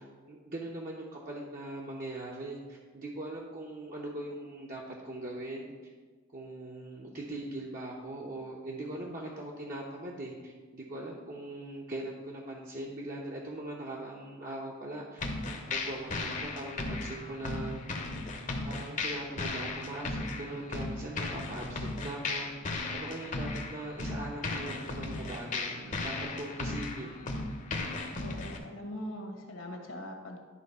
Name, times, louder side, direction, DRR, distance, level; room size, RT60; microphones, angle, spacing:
voice 1, 0.0-5.9 6.3-15.3 15.7-17.8 18.6-27.2, right 1 dB, 40° right, -3 dB, 0.9 m, -41 dB
sound 1, 15.2-28.6, left 2 dB, 35° left, 0.8 m, -36 dB
voice 2, 28.1-30.4, left 1 dB, 70° left, 2 dB, 1.3 m, -41 dB
11.0 x 3.8 x 5.5 m, 1.4 s
head